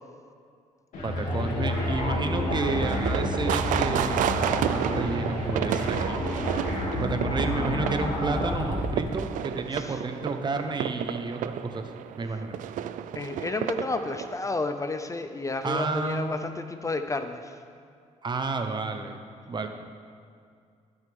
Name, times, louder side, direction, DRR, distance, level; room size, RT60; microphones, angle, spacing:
sound 1, 0.9-9.2, left 1 dB, 75° left, 2.5 m, -29 dB
voice 1, 1.0-6.2 6.9-11.9 12.2-12.6 15.6-16.4 18.2-19.2 19.5-19.7, right 3 dB, 35° right, 6 dB, 0.9 m, -31 dB
sound 2, 1.7-14.3, right 10 dB, 80° right, 0.4 m, -32 dB
voice 2, 13.1-17.6, left 3 dB, 25° left, 8 dB, 0.5 m, -31 dB
17.5 x 6.4 x 3.6 m, 2.3 s
cardioid pair, 95°, 13 cm